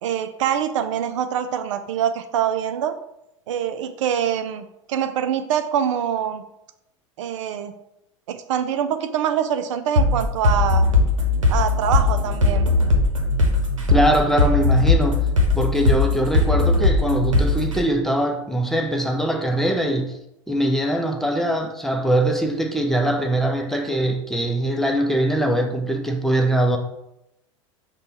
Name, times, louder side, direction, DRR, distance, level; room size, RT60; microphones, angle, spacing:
voice 1, 0.0-2.9 3.5-6.4 7.2-7.7 8.3-10.9 11.5-12.7, right 9 dB, 70° right, 0.4 m, -24 dB
sound 1, 10.0-17.8, left 3 dB, 90° right, 0.8 m, -19 dB
voice 2, 13.9-15.3 15.5-20.2 20.5-26.8, right 1 dB, ahead, 0.6 m, -22 dB
5.2 x 2.3 x 4.3 m
hypercardioid pair, 85°, 16 cm